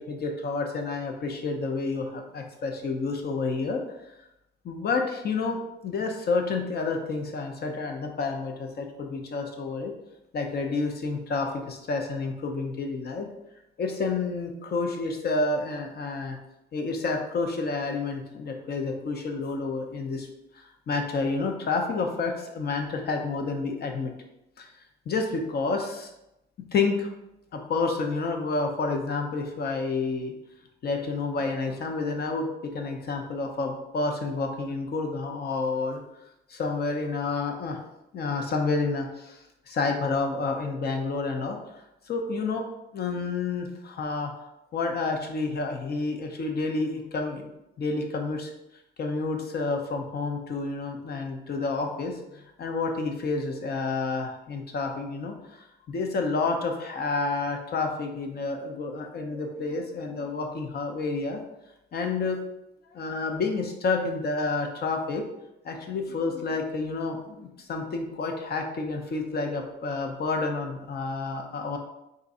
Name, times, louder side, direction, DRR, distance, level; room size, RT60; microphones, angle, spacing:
voice 1, 0.0-3.8 4.6-9.9 10.3-13.3 13.8-16.4 16.7-20.3 20.5-24.1 24.6-24.7 25.1-26.1 26.7-27.1 27.5-30.3 30.8-36.0 36.5-37.8 38.1-42.7 42.9-44.3 44.7-47.5 47.8-48.5 49.0-61.4 61.9-62.4 62.9-65.2 65.6-71.8, left 3 dB, 55° left, 3 dB, 0.8 m, -29 dB
3.7 x 2.7 x 4.2 m, 0.87 s
cardioid pair, 90°, 20 cm